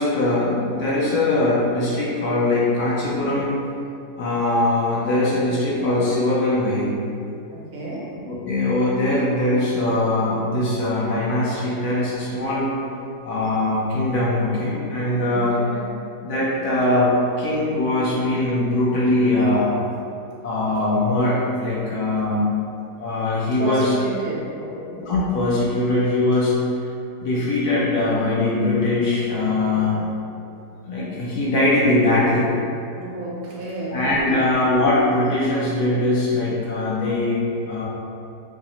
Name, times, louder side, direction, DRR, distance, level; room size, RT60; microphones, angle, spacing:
voice 1, 0.0-3.6 4.2-6.9 8.3-12.7 13.2-15.5 16.2-19.7 20.4-22.5 23.0-23.9 24.7-26.5 27.2-30.0 30.8-32.5 33.9-37.8, left 2 dB, 75° left, -6 dB, 1.1 m, -21 dB
voice 2, 7.5-8.1 15.3-15.9 23.6-24.9 29.6-30.1 32.9-34.5, right 1 dB, 55° right, -5 dB, 0.8 m, -31 dB
4.8 x 2.0 x 2.8 m, 2.6 s
omnidirectional pair, 1.7 m